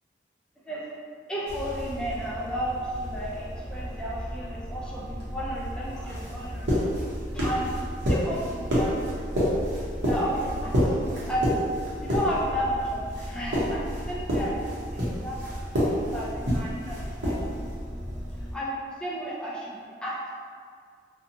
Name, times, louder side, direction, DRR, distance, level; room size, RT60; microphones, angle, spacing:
voice 1, 1.3-7.0 7.3-7.7 8.1-9.2 10.0-15.4 15.7-17.4 18.5-20.3, equal, 5° left, -6 dB, 0.4 m, -33 dB
sound 1, 1.5-18.5, equal, 90° right, 0.8 m, -30 dB
2.7 x 2.2 x 2.6 m, 2.1 s
head